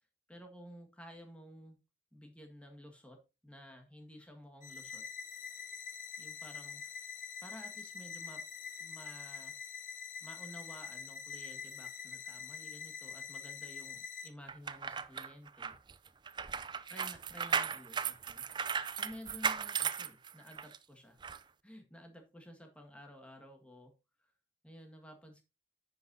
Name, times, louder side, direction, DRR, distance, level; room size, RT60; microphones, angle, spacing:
voice 1, 0.3-1.8 2.1-5.1 6.2-7.1 7.4-8.5 8.8-9.6 10.2-15.8 16.9-23.9 24.2-24.3 24.6-25.4, equal, 5° left, 1.7 m, -53 dB
sound 1, 4.6-14.3, left 6 dB, 45° left, 1.1 m, -45 dB
sound 2, 14.5-20.8 21.2-21.4, right 6 dB, 25° right, 0.4 m, -36 dB
10.5 x 8.1 x 2.7 m
head